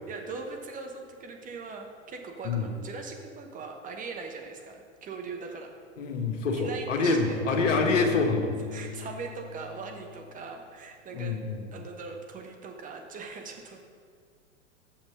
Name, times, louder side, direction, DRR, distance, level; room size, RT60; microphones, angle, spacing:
voice 1, 0.1-5.7 6.5-7.7 8.7-11.4 11.7-13.8, right 4 dB, 20° right, 3 dB, 1.0 m, -40 dB
voice 2, 6.0-8.5 11.1-11.7, left 4 dB, 65° left, 4 dB, 1.2 m, -26 dB
Bowed string instrument, 7.2-10.3, left 4 dB, 85° left, 1.0 m, -36 dB
6.9 x 6.1 x 5.7 m, 2.1 s
figure-of-eight pair, 90°, 40 cm